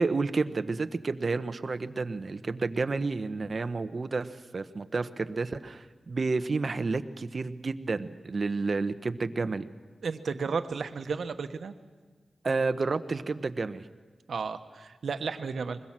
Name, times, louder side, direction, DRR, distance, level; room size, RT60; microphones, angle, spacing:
voice 1, 0.0-9.6 12.4-13.8, right 3 dB, 50° right, 11 dB, 1.0 m, -30 dB
voice 2, 10.0-11.7 14.3-15.8, right 5 dB, 85° right, 9 dB, 1.2 m, -33 dB
25.0 x 21.0 x 7.5 m, 1.4 s
wide cardioid pair, 85°, 0 cm